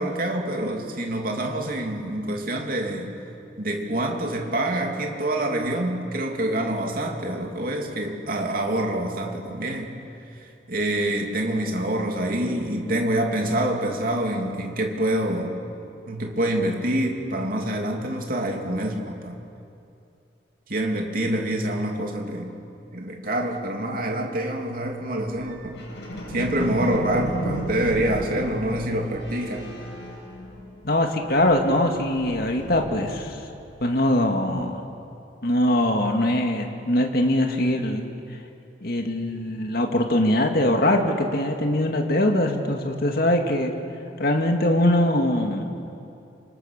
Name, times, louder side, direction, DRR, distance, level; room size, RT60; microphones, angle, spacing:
voice 1, 0.0-3.1 3.6-10.0 10.7-15.6 16.1-19.4 20.7-22.5 22.9-25.8 26.3-29.7, right 1 dB, 50° right, 1 dB, 3.1 m, -26 dB
sound 1, 25.4-31.0 31.2-33.5, equal, 85° left, 7.5 m, -34 dB
voice 2, 30.8-33.4 33.8-34.8 35.4-38.1 38.8-43.7 44.2-45.7, left 1 dB, 60° left, 3 dB, 2.2 m, -22 dB
29.5 x 26.5 x 6.8 m, 2.6 s
head